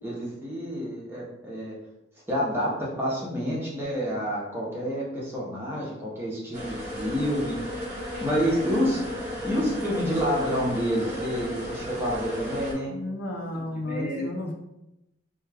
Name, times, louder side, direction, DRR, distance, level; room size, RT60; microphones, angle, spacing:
voice 1, 0.0-1.7 2.3-7.8 8.2-9.0 9.4-12.9 13.8-14.2, equal, 10° right, -5 dB, 0.7 m, -28 dB
sound 1, 6.5-12.7, left 1 dB, 35° right, 0.9 m, -34 dB
voice 2, 12.9-14.5, left 1 dB, 65° left, 1 dB, 0.5 m, -33 dB
2.2 x 2.2 x 3.3 m, 0.91 s
head